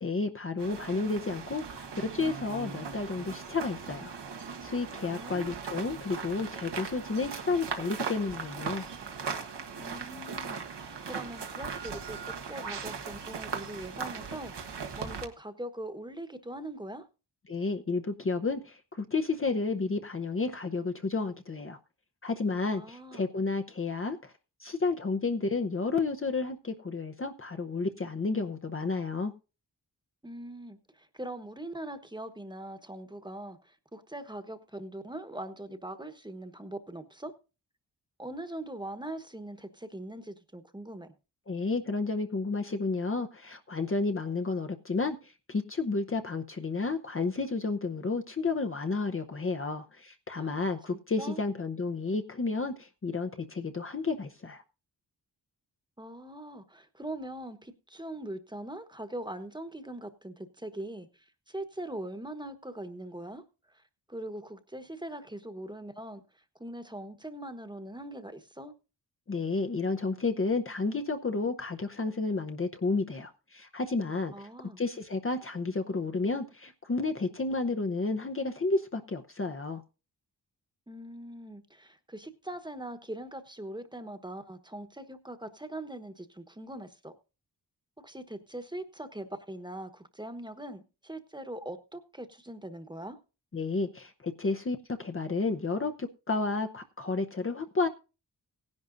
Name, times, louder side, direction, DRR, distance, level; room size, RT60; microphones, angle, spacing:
voice 1, 0.0-4.1 4.6-8.8 17.5-21.8 22.2-24.3 24.6-29.3 41.5-54.6 69.3-74.3 74.8-79.8 93.5-97.9, left 3 dB, 30° left, 0.8 m, -31 dB
sound 1, 0.6-15.2, right 5 dB, 85° right, 1.4 m, -39 dB
voice 2, 5.0-5.6 9.8-17.1 22.7-23.3 30.2-37.3 38.2-41.1 50.4-50.6 50.9-51.4 56.0-61.1 61.5-63.4 63.7-63.8 64.1-66.2 66.6-68.7 74.3-74.8 80.9-87.1 88.0-93.2, right 1 dB, 10° right, 1.2 m, -41 dB
17.5 x 10.5 x 2.6 m
wide cardioid pair, 105°, 40 cm